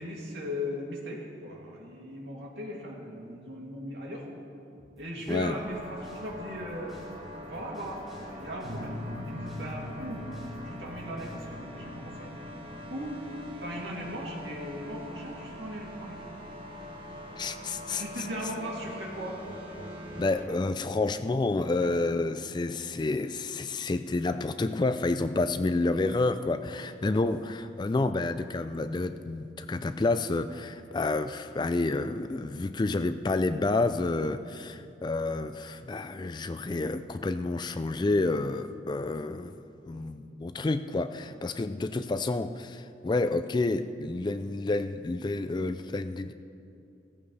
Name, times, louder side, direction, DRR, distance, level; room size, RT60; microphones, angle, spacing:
voice 1, 0.0-4.3 5.0-7.0 7.4-9.0 9.3-10.3 10.6-12.3 12.9-13.2 13.6-16.2 17.9-19.4 21.8-21.9 34.6-34.8 39.9-40.1 41.3-41.4, equal, 70° right, -3 dB, 2.7 m, -38 dB
sound 1, 4.7-11.6, equal, ahead, 2.8 m, -58 dB
sound 2, 5.4-20.4, left 1 dB, 30° right, 1.6 m, -43 dB
sound 3, 8.6-18.0, left 1 dB, 55° right, 1.1 m, -44 dB
voice 2, 17.4-18.0 20.2-39.6 39.9-46.3, left 2 dB, 25° left, 11 dB, 0.3 m, -29 dB
17.0 x 14.5 x 3.3 m, 2.6 s
head